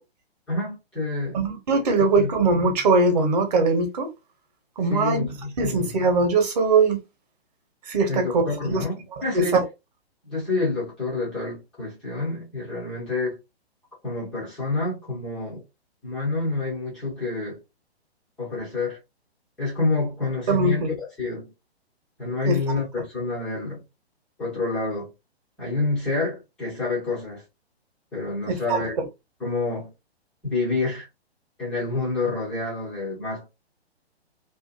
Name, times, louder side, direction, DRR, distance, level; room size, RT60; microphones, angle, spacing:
voice 1, 0.5-1.4 2.2-2.3 4.9-5.9 8.1-9.6 10.2-13.4 14.0-15.6 16.0-17.6 18.4-19.0 19.6-21.5 22.2-23.8 24.4-25.1 25.6-27.4 28.1-29.0 29.4-29.9 30.4-31.1 31.6-33.5, left 3 dB, ahead, 0.4 m, -28 dB
voice 2, 1.3-4.1 4.8-5.2 5.6-7.0 7.9-8.8 9.3-9.6 20.5-20.9 22.4-22.5 28.7-28.8, right 3 dB, 40° right, 0.9 m, -21 dB
2.5 x 2.4 x 2.4 m
figure-of-eight pair, 125°, 32 cm